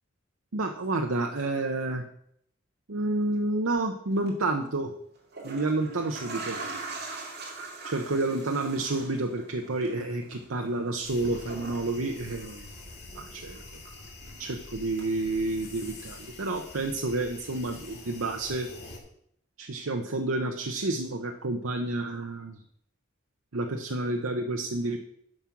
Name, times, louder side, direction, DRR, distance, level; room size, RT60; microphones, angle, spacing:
voice 1, 0.5-2.0 2.9-4.9 5.4-6.6 7.8-12.7 13.2-13.6 14.4-18.7 19.6-22.6 23.5-25.0, right 2 dB, 80° right, 4 dB, 0.8 m, -30 dB
sound 1, 4.1-4.3 5.1-13.2 13.5-14.5 15.0-15.1, right 3 dB, 50° right, 2.5 m, -42 dB
sound 2, 11.0-19.0, left 2 dB, 50° left, 2.6 m, -46 dB
11.0 x 6.2 x 5.9 m, 0.71 s
head